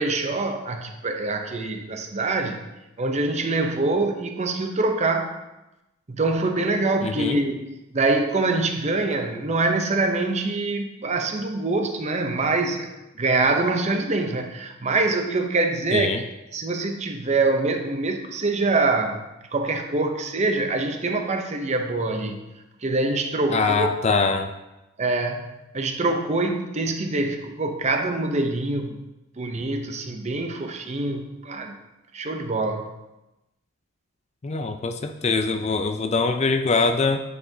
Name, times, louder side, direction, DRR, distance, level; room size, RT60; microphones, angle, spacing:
voice 1, 0.0-2.6 3.0-5.4 6.1-12.9 13.2-16.1 16.5-19.2 19.5-22.4 22.8-23.9 25.0-29.0 29.4-31.8 32.1-32.9, right 3 dB, 30° right, 5 dB, 0.6 m, -24 dB
voice 2, 7.0-7.4 15.9-16.2 23.5-24.5 34.4-37.2, left 4 dB, 30° left, 7 dB, 0.4 m, -23 dB
9.4 x 5.7 x 2.7 m, 0.99 s
head